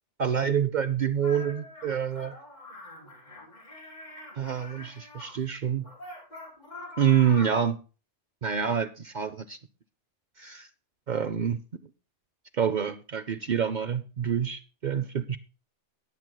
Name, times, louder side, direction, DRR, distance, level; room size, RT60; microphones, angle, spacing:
voice 1, 0.2-2.3 4.4-5.9 7.0-7.8 8.4-9.6 10.4-10.7 11.1-11.6 12.5-15.4, right 8 dB, 50° right, 0.6 m, -27 dB
sound 1, 1.2-5.3 5.8-7.7, left 2 dB, 40° left, 3.6 m, -44 dB
20.0 x 7.6 x 2.3 m
omnidirectional pair, 1.2 m